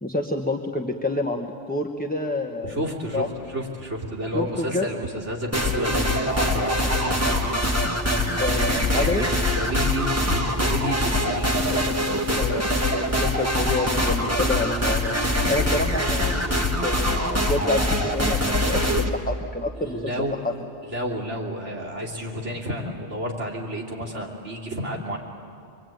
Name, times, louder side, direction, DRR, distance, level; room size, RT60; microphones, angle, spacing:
voice 1, 0.0-2.8 3.1-3.3 4.3-4.9 8.4-9.2 12.4-20.1, left 2 dB, 10° left, 3 dB, 1.0 m, -28 dB
voice 2, 2.6-7.5 8.7-9.3 9.5-11.5 19.8-20.4 20.9-25.2, equal, 75° right, -1 dB, 3.3 m, -30 dB
sound 1, 5.5-19.1, left 1 dB, 15° right, 1.8 m, -23 dB
26.0 x 23.0 x 9.2 m, 2.4 s
omnidirectional pair, 1.2 m